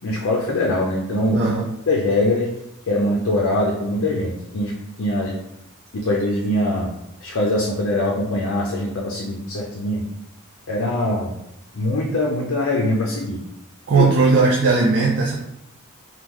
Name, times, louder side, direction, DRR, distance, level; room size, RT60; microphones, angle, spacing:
voice 1, 0.0-1.4 1.9-2.5 2.9-4.7 5.0-5.4 5.9-6.9 7.2-10.0 10.7-11.3 11.7-13.4 13.9-14.1, left 1 dB, 60° left, -2 dB, 0.5 m, -22 dB
voice 2, 1.3-1.6 13.9-15.4, right 4 dB, 50° right, -3 dB, 0.4 m, -17 dB
3.6 x 2.3 x 2.9 m, 0.81 s
head